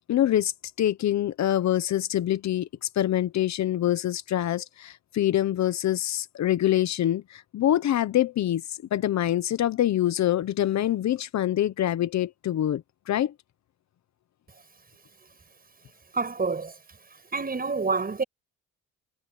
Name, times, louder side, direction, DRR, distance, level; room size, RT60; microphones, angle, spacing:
voice 1, 0.1-0.5 0.8-13.3, left 12 dB, 65° left, 1.1 m, -25 dB
voice 2, 16.1-16.7 17.3-18.2, right 4 dB, 30° right, 6.9 m, -27 dB
cardioid pair, 90°, 30 cm